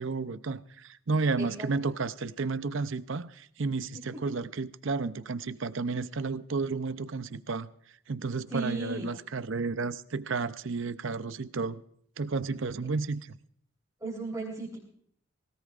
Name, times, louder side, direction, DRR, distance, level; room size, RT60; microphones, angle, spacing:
voice 1, 0.0-7.7 8.1-11.8 12.2-13.3, right 4 dB, 65° right, 0.6 m, -32 dB
voice 2, 1.4-1.7 4.1-4.2 8.5-9.1 14.0-14.8, right 2 dB, 15° right, 3.7 m, -35 dB
25.0 x 17.0 x 2.5 m
head